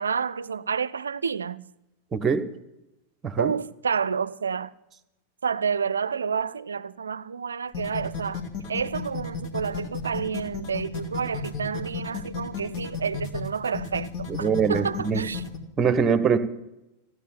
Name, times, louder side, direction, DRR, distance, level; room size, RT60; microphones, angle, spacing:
voice 1, 0.0-1.7 3.4-4.7 5.4-8.4 8.7-15.4, right 6 dB, 70° right, 0.5 m, -29 dB
voice 2, 2.1-2.4 3.2-3.5 14.4-15.2 15.8-16.4, right 6 dB, 20° right, 1.3 m, -23 dB
sound 1, 7.7-15.6, left 5 dB, 45° left, 2.6 m, -33 dB
15.5 x 9.5 x 8.7 m
figure-of-eight pair, 90°, 0 cm